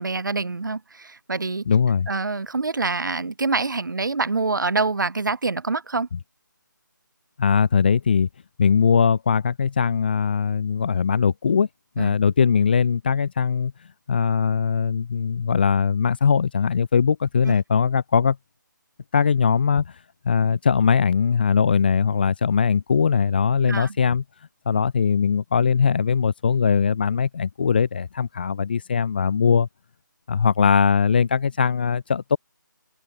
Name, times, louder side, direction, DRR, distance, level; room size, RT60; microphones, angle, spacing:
voice 1, 0.0-1.7 2.1-6.1 12.0-12.1 17.4-17.5 23.6-24.0, right 3 dB, 70° right, 0.5 m, -26 dB
voice 2, 1.7-2.1 7.4-8.3 8.6-11.7 12.0-13.7 14.1-18.4 19.1-19.9 20.2-24.2 24.7-29.7 30.3-32.4, left 6 dB, 30° left, 0.5 m, -20 dB
figure-of-eight pair, 155°, 11 cm